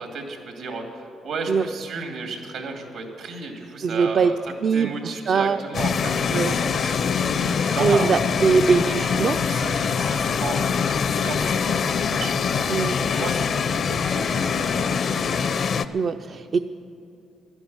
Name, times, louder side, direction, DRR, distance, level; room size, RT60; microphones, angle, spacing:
voice 1, 0.0-4.3 4.7-8.1 8.6-15.6, right 4 dB, 80° right, 3 dB, 2.5 m, -34 dB
voice 2, 3.8-4.3 4.6-5.6 6.3-6.5 7.8-9.4 12.7-13.0 15.9-16.6, right 5 dB, 50° right, 7 dB, 0.4 m, -21 dB
sound 1, 5.7-15.9, left 6 dB, 55° left, 0.5 m, -24 dB
11.5 x 10.5 x 9.5 m, 2.8 s
cardioid pair, 90°, 0 cm